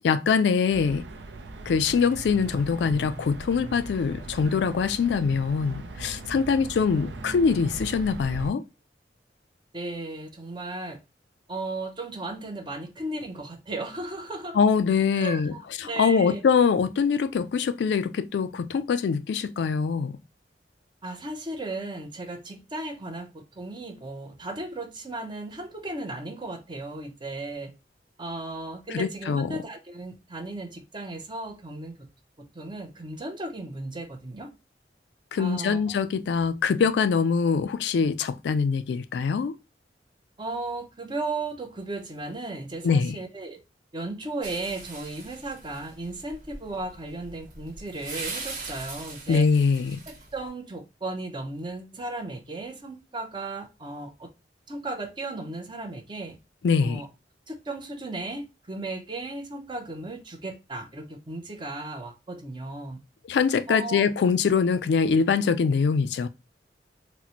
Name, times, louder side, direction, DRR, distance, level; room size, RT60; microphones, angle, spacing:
voice 1, 0.0-1.0 1.7-8.6 14.6-15.5 15.8-20.2 28.9-29.6 35.3-39.5 42.8-43.2 49.3-50.0 56.6-57.0 63.3-66.3, left 5 dB, 75° left, 0.3 m, -23 dB
sound 1, 0.7-8.5, right 2 dB, 85° right, 0.5 m, -39 dB
voice 2, 9.7-11.0 11.5-14.6 15.1-16.4 21.0-27.7 28.2-32.1 32.4-34.5 35.4-36.0 40.4-43.6 43.9-49.5 50.1-54.3 54.7-56.4 56.8-57.1 57.5-63.0 63.7-64.1, right 2 dB, 25° right, 0.6 m, -35 dB
sound 2, 44.4-50.5, right 3 dB, 50° right, 1.2 m, -40 dB
4.0 x 2.1 x 2.8 m
head